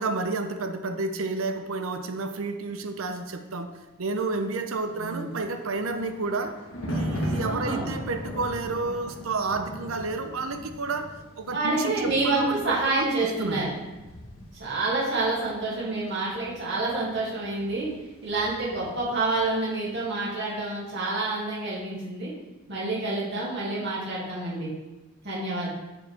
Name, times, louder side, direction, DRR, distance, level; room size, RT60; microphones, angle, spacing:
voice 1, 0.0-6.6 6.9-13.7, right 3 dB, 80° right, 8 dB, 0.7 m, -31 dB
Thunder, 5.0-19.5 19.8-20.1, equal, 75° left, 1.3 m, -38 dB
voice 2, 7.4-7.9 11.5-13.7 14.6-17.9 18.2-22.3 22.7-24.7 25.2-25.7, right 2 dB, 55° right, -7 dB, 2.5 m, -28 dB
7.0 x 6.9 x 3.5 m, 1.1 s
head